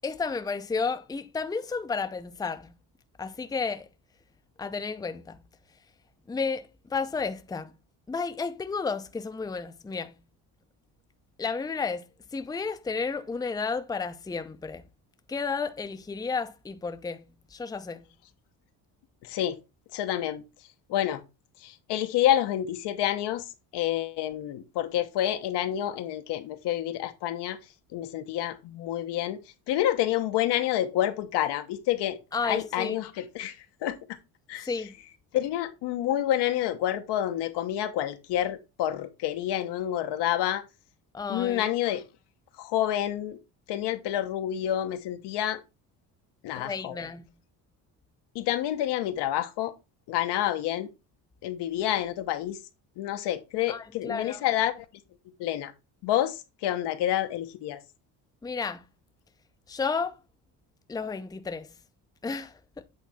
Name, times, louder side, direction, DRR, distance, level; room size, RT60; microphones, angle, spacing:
voice 1, 0.0-2.7 3.2-3.9 4.6-5.4 6.3-7.7 8.1-10.2 11.4-14.8 15.3-18.0 32.3-33.0 34.6-34.9 41.1-41.7 46.5-47.2 53.7-54.4 58.4-58.8 59.7-60.2 60.9-61.7 62.2-62.8, left 4 dB, 10° left, 0.6 m, -32 dB
voice 2, 19.3-19.6 19.9-20.4 20.9-21.2 21.6-23.4 23.7-27.6 27.9-29.4 29.7-32.2 32.4-33.5 33.8-34.0 34.5-34.7 35.3-40.6 41.3-42.0 42.6-43.4 43.7-45.6 46.4-46.9 48.3-49.7 50.1-50.9 51.4-52.6 53.0-54.8 55.4-55.7 56.0-57.8, left 12 dB, 75° left, 1.1 m, -28 dB
8.4 x 3.5 x 4.2 m
cardioid pair, 95°, 42 cm